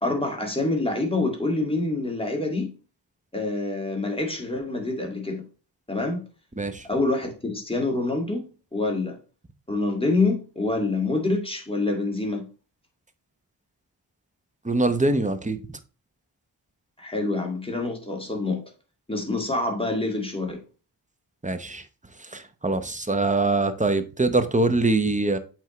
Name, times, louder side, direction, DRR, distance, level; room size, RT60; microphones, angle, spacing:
voice 1, 0.0-2.7 3.3-5.5 5.9-6.2 6.9-8.5 8.7-9.2 9.7-12.5 17.0-18.6 19.1-20.6, left 2 dB, 10° left, 2.1 m, -26 dB
voice 2, 14.6-15.6 21.4-21.8 22.3-25.4, right 2 dB, 15° right, 0.9 m, -23 dB
8.0 x 4.5 x 3.1 m
wide cardioid pair, 50°, 44 cm